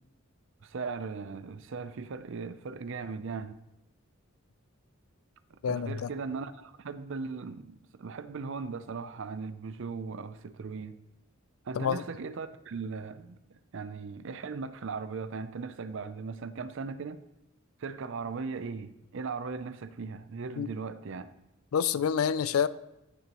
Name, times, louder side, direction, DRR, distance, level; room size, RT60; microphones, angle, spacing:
voice 1, 0.6-3.6 5.5-11.0 11.6-13.4 13.7-17.2 17.8-21.3, right 4 dB, 65° right, 0.5 m, -38 dB
voice 2, 5.6-6.1 11.8-12.0 20.6-20.7 21.7-22.7, left 7 dB, 90° left, 0.4 m, -27 dB
15.0 x 6.7 x 3.0 m
head